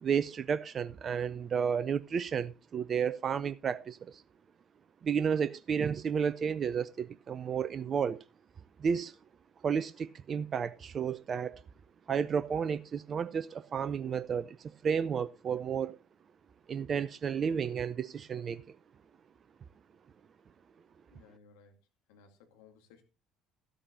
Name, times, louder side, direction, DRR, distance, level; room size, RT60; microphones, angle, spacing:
voice 1, 0.0-4.2 5.0-8.2 8.8-9.1 9.6-11.6 12.1-16.0 16.7-18.6, right 7 dB, 40° right, 0.5 m, -32 dB
voice 2, 21.1-21.8 22.1-23.0, left 5 dB, 70° left, 2.1 m, -59 dB
13.0 x 12.5 x 2.6 m
figure-of-eight pair, 60°, 0 cm